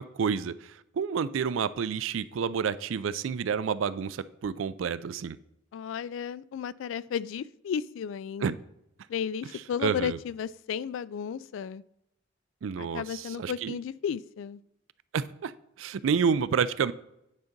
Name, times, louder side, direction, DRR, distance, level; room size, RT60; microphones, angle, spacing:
voice 1, 0.0-5.4 8.4-8.6 9.5-10.2 12.6-13.8 15.1-15.5 15.8-16.9, right 6 dB, 80° right, 16 dB, 0.4 m, -29 dB
voice 2, 5.7-8.5 9.1-11.8 12.8-14.6, left 7 dB, 75° left, 20 dB, 0.3 m, -34 dB
9.6 x 3.9 x 5.2 m, 0.83 s
head